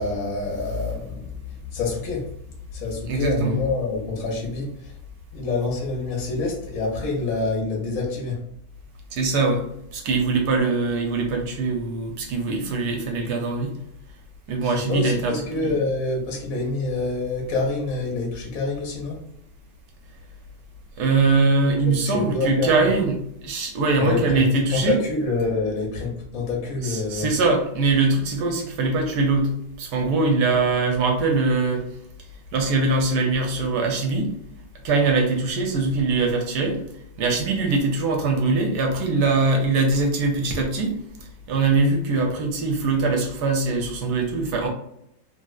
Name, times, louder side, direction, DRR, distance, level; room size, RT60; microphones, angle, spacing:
voice 1, 0.0-4.9 5.3-8.4 14.6-19.2 21.9-22.9 24.0-27.3, left 3 dB, 65° left, 0 dB, 1.0 m, -27 dB
voice 2, 3.1-3.6 9.1-9.6 9.9-13.7 14.5-15.4 15.6-15.8 21.0-23.2 23.4-25.0 26.8-29.5 29.8-31.8 32.5-34.3 34.8-36.8 37.2-44.7, right 3 dB, 70° right, 2 dB, 1.1 m, -22 dB
3.2 x 2.7 x 2.3 m, 0.77 s
omnidirectional pair, 2.0 m